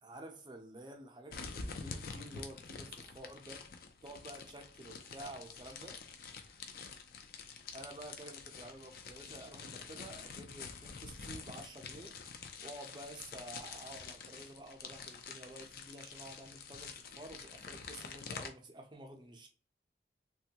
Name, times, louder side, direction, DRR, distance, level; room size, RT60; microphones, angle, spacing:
voice 1, 0.0-3.6 4.0-6.0 7.7-12.2 12.6-19.5, right 1 dB, 25° right, 0.5 m, -50 dB
sound 1, 1.3-18.5, left 5 dB, 50° left, 0.4 m, -47 dB
3.2 x 2.2 x 2.8 m
head